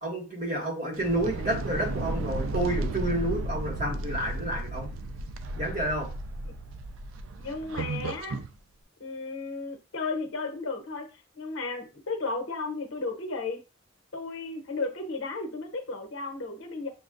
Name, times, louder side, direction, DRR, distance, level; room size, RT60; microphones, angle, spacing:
voice 1, 0.0-4.9 5.6-6.1, right 1 dB, 40° right, 1.8 m, -30 dB
sound 1, 0.9-8.5, right 2 dB, 80° right, 0.4 m, -34 dB
voice 2, 7.4-8.4 9.0-11.1 11.4-13.6 14.1-16.9, left 3 dB, 85° left, 0.9 m, -34 dB
6.5 x 2.2 x 2.5 m
head